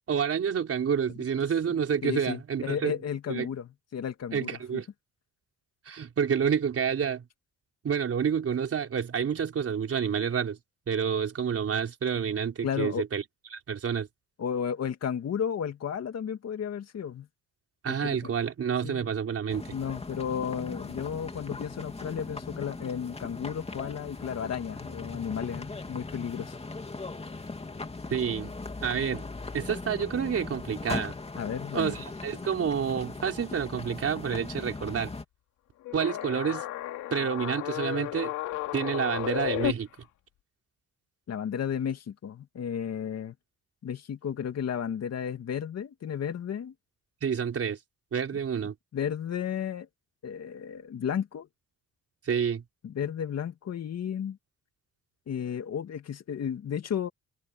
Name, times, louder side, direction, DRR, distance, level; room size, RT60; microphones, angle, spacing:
voice 1, 0.1-2.9 3.3-3.5 4.3-4.9 5.9-7.2 7.8-10.6 10.9-13.2 13.5-14.1 17.8-19.6 28.1-28.5 28.8-29.2 29.5-31.2 31.7-35.1 35.9-36.6 37.1-38.3 38.7-39.9 47.2-47.8 48.1-48.7 52.2-52.6, right 7 dB, 50° right, 4.4 m, -29 dB
voice 2, 2.0-4.8 12.6-13.0 14.4-17.3 17.9-18.3 18.8-19.1 19.7-26.6 31.4-31.9 41.3-43.3 43.8-46.7 48.9-49.9 50.2-51.5 52.8-54.4 55.3-57.1, left 8 dB, 55° left, 2.5 m, -33 dB
Boat Ramp - Walk to car, 19.5-35.2, left 3 dB, 20° left, 2.8 m, -39 dB
sound 1, 35.9-39.7, left 14 dB, 85° left, 2.7 m, -33 dB
cardioid pair, 90°, 30 cm